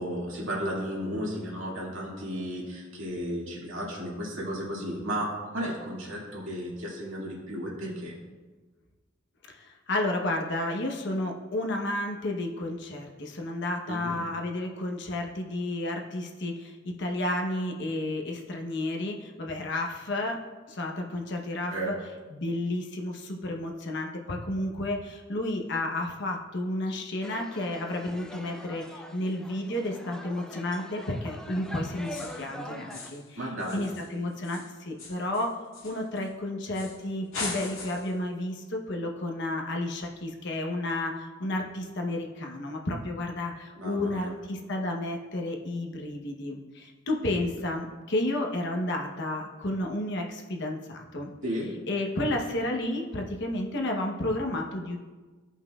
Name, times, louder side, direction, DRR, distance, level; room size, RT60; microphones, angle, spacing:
voice 1, 0.0-8.1 13.9-14.2 21.7-21.9 33.4-33.9 43.8-44.4 51.4-51.7, equal, 70° right, -4 dB, 2.2 m, -34 dB
voice 2, 9.9-13.1 13.4-16.5 17.0-20.4 20.8-21.7 22.3-23.1 23.4-25.0 25.3-28.8 29.1-32.1 32.4-32.9 33.1-33.2 33.7-34.6 34.9-35.5 35.8-38.5 38.9-41.1 41.4-43.5 43.8-44.3 44.7-46.6 47.1-47.9 48.1-50.2 50.5-50.8 51.1-51.3 51.9-55.0, left 1 dB, 60° left, 2 dB, 1.0 m, -31 dB
sound 1, 27.2-33.1, equal, 5° left, 0.4 m, -43 dB
sound 2, 32.0-32.5 32.9-33.3 33.6-36.3 36.7-37.0 37.3-38.2, left 4 dB, 85° left, 2.0 m, -40 dB
15.0 x 5.5 x 2.4 m, 1.3 s
head